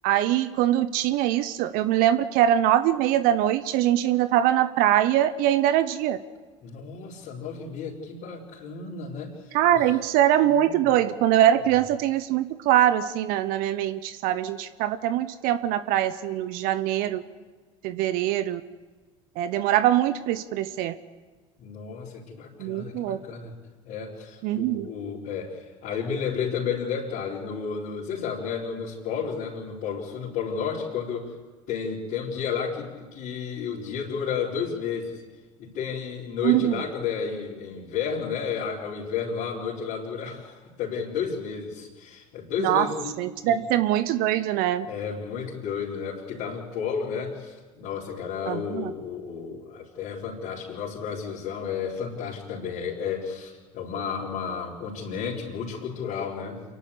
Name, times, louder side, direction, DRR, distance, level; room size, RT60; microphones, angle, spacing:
voice 1, 0.0-6.2 9.5-17.2 17.8-18.6 19.4-20.9 22.6-23.2 24.4-24.9 36.4-36.8 42.6-42.9 43.2-44.9 48.5-48.9, right 12 dB, 65° right, 13 dB, 0.9 m, -23 dB
voice 2, 6.6-9.8 10.4-10.8 21.6-23.5 23.8-31.3 31.7-35.2 35.6-43.6 44.9-56.6, left 6 dB, 65° left, -8 dB, 4.4 m, -32 dB
28.0 x 11.5 x 8.4 m, 1.4 s
hypercardioid pair, 70°, 16 cm